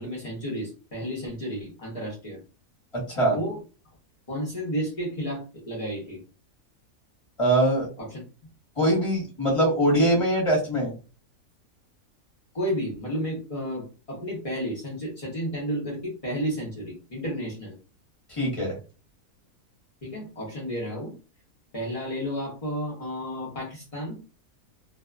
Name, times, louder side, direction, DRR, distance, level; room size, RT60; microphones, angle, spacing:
voice 1, 0.0-2.4 3.3-3.6 4.3-6.2 8.0-8.2 12.5-17.8 20.0-21.1 21.7-24.2, equal, 45° left, -3 dB, 0.4 m, -32 dB
voice 2, 2.9-3.4 7.4-7.9 8.8-10.9 18.3-18.7, right 1 dB, 25° left, -3 dB, 0.9 m, -22 dB
2.5 x 2.3 x 2.3 m, 0.34 s
omnidirectional pair, 1.7 m